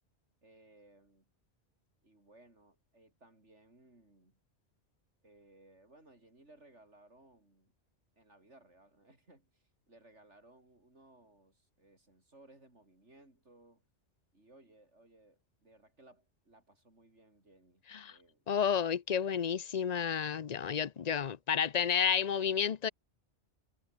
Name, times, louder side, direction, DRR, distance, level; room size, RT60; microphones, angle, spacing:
voice 1, 0.4-1.3 2.0-4.4 5.2-7.7 8.2-13.8 14.3-18.5 20.8-21.0, right 2 dB, 85° right, 6.7 m, -62 dB
voice 2, 18.5-22.9, left 7 dB, 45° left, 0.7 m, -31 dB
omnidirectional pair, 1.2 m